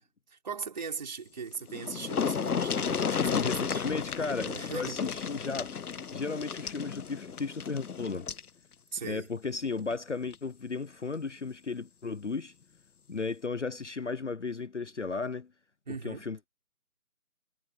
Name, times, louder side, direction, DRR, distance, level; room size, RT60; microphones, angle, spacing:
voice 1, 0.3-3.8 4.4-5.0 8.9-9.3 15.9-16.3, right 5 dB, 30° right, 5.1 m, -39 dB
sound 1, 1.4-1.5 1.7-8.5 9.8-9.9 10.3-10.4, left 6 dB, 75° left, 0.9 m, -33 dB
voice 2, 3.3-5.8 6.1-8.3 9.0-12.5 13.1-15.5 16.0-16.5, left 4 dB, 50° left, 0.9 m, -35 dB
figure-of-eight pair, 175°, 45 cm